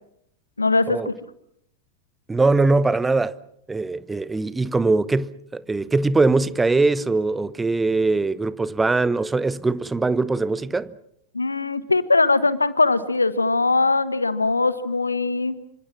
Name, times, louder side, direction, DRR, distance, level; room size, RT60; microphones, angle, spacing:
voice 1, 0.6-1.1 11.3-15.5, left 3 dB, 80° left, 1.3 m, -21 dB
voice 2, 2.3-3.3 3.7-10.9, right 3 dB, 10° right, 0.9 m, -21 dB
27.5 x 25.0 x 6.1 m
figure-of-eight pair, 90°, 0 cm